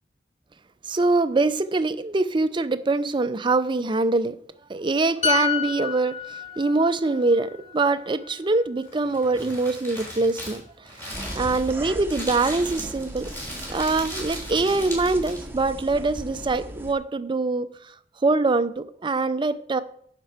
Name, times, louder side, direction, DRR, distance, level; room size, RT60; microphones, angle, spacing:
voice 1, 0.9-4.4 4.7-10.6 11.4-13.3 13.7-17.7 18.2-19.8, right 3 dB, 30° right, 0.5 m, -23 dB
sound 1, 5.2-8.8 9.1-9.4, left 6 dB, 40° left, 0.8 m, -30 dB
Crumpling crinkling, 8.8-15.6, equal, 15° left, 3.6 m, -38 dB
sound 2, 11.1-16.9, right 1 dB, 15° right, 1.0 m, -37 dB
10.0 x 6.7 x 4.9 m
head